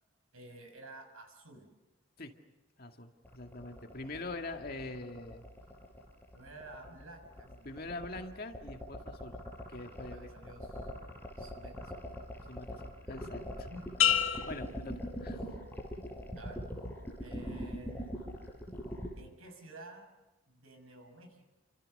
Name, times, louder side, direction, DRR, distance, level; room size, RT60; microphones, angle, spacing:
voice 1, 0.3-1.7 4.9-5.0 6.3-8.3 10.0-10.9 11.4-12.0 13.1-13.9 16.3-16.6 17.2-18.1 19.2-20.1 20.5-21.5, right 1 dB, 85° right, 4 dB, 6.7 m, -52 dB
voice 2, 2.8-5.4 7.6-9.3 9.7-10.3 12.5-13.7 14.5-15.4, left 2 dB, 45° left, 4 dB, 2.1 m, -43 dB
sound 1, 3.2-19.1, equal, 10° left, 5.3 m, -42 dB
sound 2, 14.0-15.8 16.3-16.7, left 9 dB, 70° left, 1.7 m, -31 dB
30.0 x 25.5 x 6.7 m, 1.1 s
head